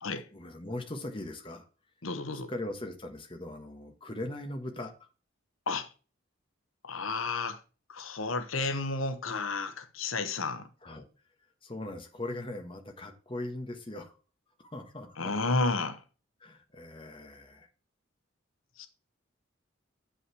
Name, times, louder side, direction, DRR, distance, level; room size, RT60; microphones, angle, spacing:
voice 1, 0.1-1.7 2.3-5.1 10.8-11.1 11.6-14.1 14.6-15.3 16.4-17.7, left 1 dB, 25° left, 1.3 m, -40 dB
voice 2, 2.0-2.5 5.7-5.9 6.8-7.6 7.9-10.7 15.2-16.0 18.8-18.9, left 3 dB, 90° left, 1.0 m, -32 dB
8.3 x 5.6 x 4.7 m
head